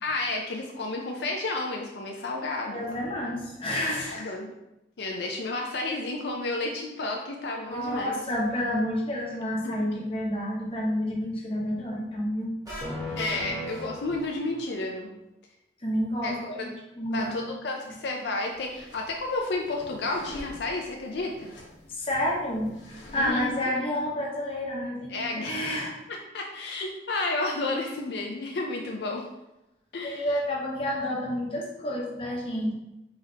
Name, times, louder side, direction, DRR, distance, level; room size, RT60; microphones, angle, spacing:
voice 1, 0.0-3.0 4.1-4.5 5.0-8.1 9.6-9.7 13.2-15.1 16.2-16.7 17.1-21.5 23.2-23.7 25.1-25.8 26.1-29.3 29.9-30.3, left 2 dB, 70° left, 1 dB, 0.5 m, -31 dB
voice 2, 2.7-4.3 7.7-12.5 15.8-16.7 17.0-17.5 21.9-25.9 30.0-32.7, left 1 dB, 30° left, -3 dB, 1.0 m, -29 dB
sound 1, 12.6-14.6, left 1 dB, 20° right, 1.5 m, -36 dB
sound 2, 18.5-23.6, left 1 dB, 85° left, 0.9 m, -47 dB
4.3 x 4.0 x 2.8 m, 0.91 s
head